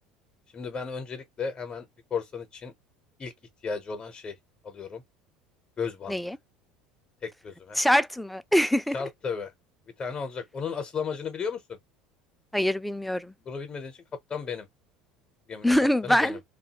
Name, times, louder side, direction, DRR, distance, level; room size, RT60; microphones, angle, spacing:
voice 1, 0.5-2.7 3.2-3.3 3.6-4.4 4.6-5.0 5.8-6.2 7.2-7.8 8.9-9.5 10.0-11.8 13.4-14.0 14.3-14.7 15.5-15.7 16.0-16.4, left 5 dB, 30° left, 0.7 m, -34 dB
voice 2, 7.8-9.0 12.5-13.3 15.6-16.4, equal, ahead, 0.4 m, -24 dB
2.6 x 2.2 x 2.8 m
figure-of-eight pair, 70°, 3 cm